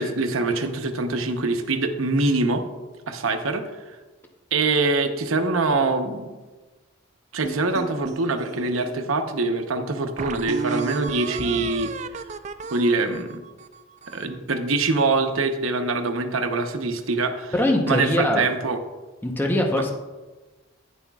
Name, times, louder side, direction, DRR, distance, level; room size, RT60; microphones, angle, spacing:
voice 1, 0.0-2.6 3.1-3.6 4.5-6.3 7.3-11.9 12.7-13.4 14.1-17.5 17.9-18.8, right 3 dB, 90° right, 6 dB, 0.9 m, -24 dB
sound 1, 7.4-9.0 9.6-9.7 10.2-14.4, right 5 dB, 35° right, 0.3 m, -34 dB
voice 2, 17.5-18.5 19.2-19.9, left 1 dB, 10° left, 1 dB, 0.8 m, -22 dB
11.5 x 10.0 x 2.4 m, 1.2 s
head